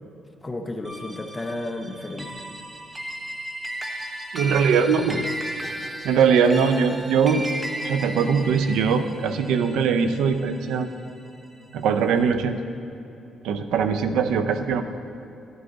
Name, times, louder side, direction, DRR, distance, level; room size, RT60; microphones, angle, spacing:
voice 1, 0.4-2.4 5.1-5.3 6.5-6.8, left 2 dB, 20° left, 5 dB, 0.8 m, -32 dB
sound 1, 0.8-11.5, right 1 dB, 20° right, 0.9 m, -35 dB
voice 2, 4.3-5.2 6.0-7.4 7.8-10.9 11.7-12.6 13.4-14.8, right 6 dB, 85° right, 10 dB, 0.5 m, -21 dB
10.5 x 9.4 x 3.9 m, 2.9 s
cardioid pair, 90°, 0 cm